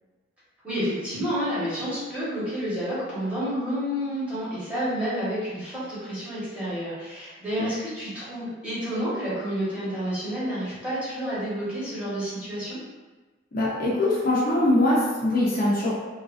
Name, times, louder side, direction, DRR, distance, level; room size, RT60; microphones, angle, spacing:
voice 1, 0.6-12.8, equal, 5° right, -12 dB, 1.2 m, -30 dB
voice 2, 13.5-15.9, left 1 dB, 50° left, -7 dB, 0.7 m, -22 dB
3.0 x 2.5 x 2.4 m, 1.2 s
head